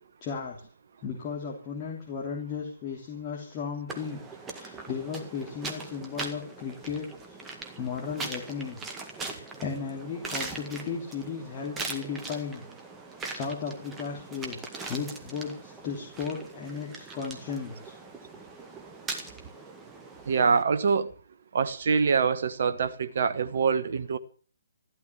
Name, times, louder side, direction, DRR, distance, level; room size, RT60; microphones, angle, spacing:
voice 1, 0.2-0.6 1.0-4.2 4.5-8.8 9.2-12.6 13.3-17.9, left 6 dB, 25° left, 3.1 m, -35 dB
sound 1, 3.9-20.6, right 3 dB, 10° right, 1.9 m, -41 dB
voice 2, 20.3-21.1 21.5-24.2, right 5 dB, 50° right, 1.3 m, -25 dB
14.0 x 12.5 x 7.1 m
figure-of-eight pair, 135°, 0 cm